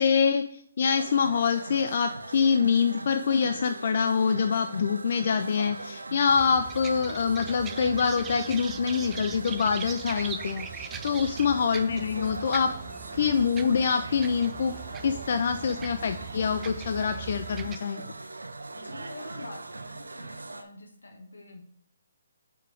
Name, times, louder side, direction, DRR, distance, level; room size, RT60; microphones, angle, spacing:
voice 1, 0.0-12.7 13.1-14.7 15.0-18.0, left 6 dB, 55° left, 8 dB, 0.4 m, -25 dB
sound 1, 0.9-20.6, right 2 dB, 85° right, 0.6 m, -41 dB
sound 2, 6.3-17.8, right 7 dB, 15° right, 0.4 m, -41 dB
voice 2, 18.7-21.6, left 2 dB, 85° left, 2 dB, 1.5 m, -46 dB
4.9 x 4.5 x 5.0 m, 0.68 s
figure-of-eight pair, 145°, 0 cm